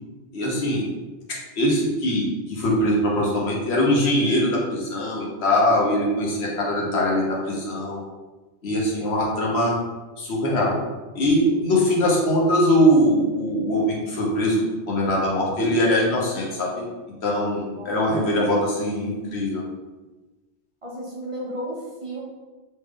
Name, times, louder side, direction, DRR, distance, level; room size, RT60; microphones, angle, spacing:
voice 1, 0.3-0.9 1.6-8.0 8.6-9.8 10.2-10.8 11.1-16.9 17.2-19.6, equal, 70° left, -3 dB, 1.1 m, -22 dB
voice 2, 17.7-18.3 20.8-22.2, right 1 dB, 35° right, -5 dB, 0.8 m, -33 dB
3.2 x 2.5 x 3.6 m, 1.2 s
omnidirectional pair, 1.1 m